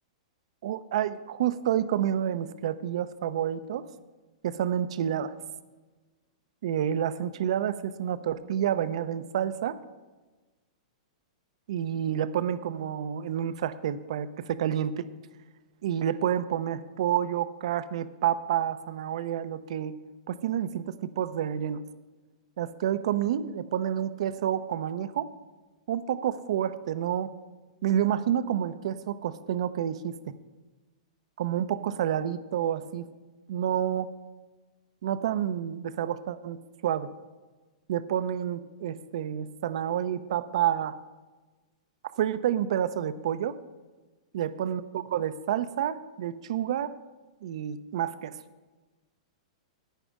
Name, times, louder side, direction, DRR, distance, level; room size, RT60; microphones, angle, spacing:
voice 1, 0.6-3.9 4.4-5.3 6.6-9.8 11.7-15.1 15.8-19.9 20.3-21.8 22.6-25.3 25.9-27.3 27.8-30.2 31.4-33.1 33.5-34.1 35.0-36.6 36.8-37.1 37.9-41.0 42.0-43.6 44.3-46.9 47.4-48.4, right 10 dB, 65° right, 13 dB, 0.7 m, -29 dB
14.5 x 10.0 x 3.7 m, 1.3 s
hypercardioid pair, 135°, 3 cm